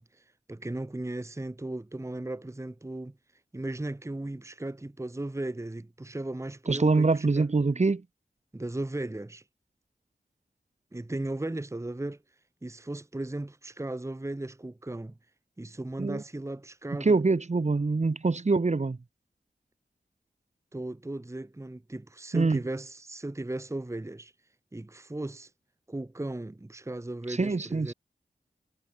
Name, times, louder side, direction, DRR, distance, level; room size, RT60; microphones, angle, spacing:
voice 1, 0.0-3.2 3.5-7.5 8.5-9.4 10.9-12.2 12.6-15.2 15.6-17.2 20.7-24.3 24.7-25.5 25.9-27.9, right 2 dB, 15° right, 1.0 m, -36 dB
voice 2, 6.7-8.0 16.0-16.2 17.0-19.0 22.3-22.6 27.4-27.9, right 3 dB, 45° right, 1.2 m, -24 dB
wide cardioid pair, 60°, 17 cm